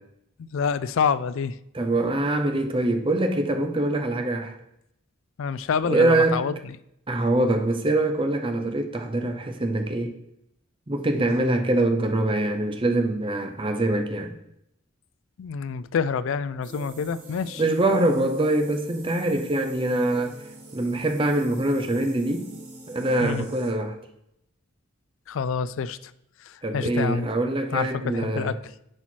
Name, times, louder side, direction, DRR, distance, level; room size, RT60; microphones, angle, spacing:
voice 1, 0.4-1.6 5.4-6.5 15.4-17.6 23.2-23.5 25.3-26.1 26.4-27.3 27.7-28.7, left 6 dB, 65° left, 0.3 m, -27 dB
voice 2, 1.7-4.6 5.9-6.5 7.1-10.1 10.9-14.3 17.6-20.4 20.7-22.5 22.9-24.0 26.6-28.6, right 2 dB, 25° right, 0.7 m, -24 dB
sound 1, 16.6-23.7, right 2 dB, 40° right, 2.2 m, -44 dB
9.8 x 4.4 x 4.5 m
head